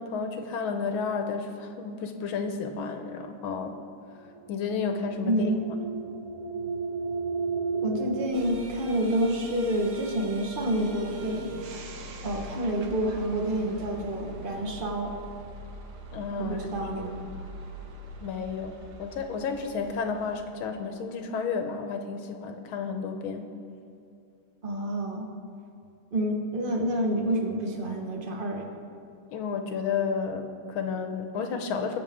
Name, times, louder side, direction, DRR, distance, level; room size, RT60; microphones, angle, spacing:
voice 1, 0.0-3.7 4.5-5.6 16.1-16.6 18.2-18.7 19.0-23.5 29.3-32.0, left 5 dB, 75° left, 6 dB, 1.5 m, -31 dB
sound 1, 4.3-8.3, right 4 dB, 75° right, 1.7 m, -33 dB
voice 2, 5.2-5.6 7.8-11.6 12.2-15.1 16.4-17.1 24.6-25.2 26.1-28.6, right 1 dB, 30° right, 2 dB, 1.0 m, -28 dB
sound 2, 8.3-20.5, right 2 dB, 60° right, 1.3 m, -42 dB
20.5 x 7.1 x 3.6 m, 2.6 s
omnidirectional pair, 2.4 m